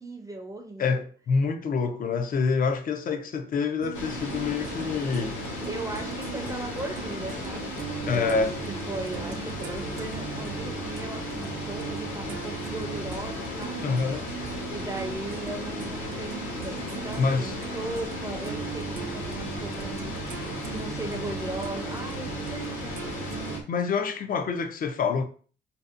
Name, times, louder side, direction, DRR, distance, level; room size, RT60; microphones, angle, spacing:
voice 1, 0.0-1.0 5.6-8.4 8.9-13.8 14.7-20.4 20.7-23.6, right 2 dB, 15° right, 0.4 m, -38 dB
voice 2, 0.8-5.4 8.1-8.5 13.8-14.2 17.2-17.5 23.7-25.2, left 5 dB, 45° left, 0.4 m, -26 dB
sound 1, 3.8-23.6, right 7 dB, 85° right, 0.4 m, -38 dB
sound 2, 3.9-23.6, left 2 dB, 80° left, 1.0 m, -36 dB
2.6 x 2.1 x 2.4 m
cardioid pair, 90°, 20 cm